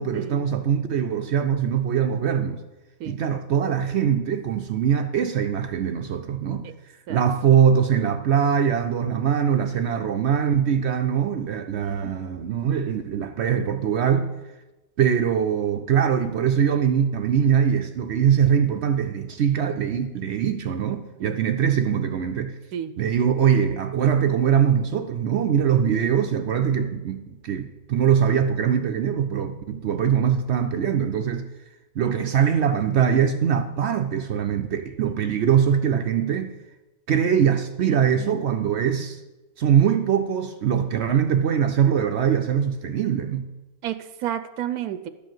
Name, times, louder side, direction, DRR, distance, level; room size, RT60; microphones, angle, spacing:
voice 1, 0.0-2.6 3.0-6.7 7.1-14.3 15.0-22.5 23.0-31.5 32.0-36.5 37.1-39.2 39.6-43.4, right 8 dB, 65° right, 0.7 m, -22 dB
voice 2, 11.7-12.1 21.2-21.3 22.7-22.9 38.2-38.4 43.8-45.1, right 10 dB, 85° right, 1.1 m, -31 dB
12.0 x 5.0 x 7.7 m
omnidirectional pair, 1.6 m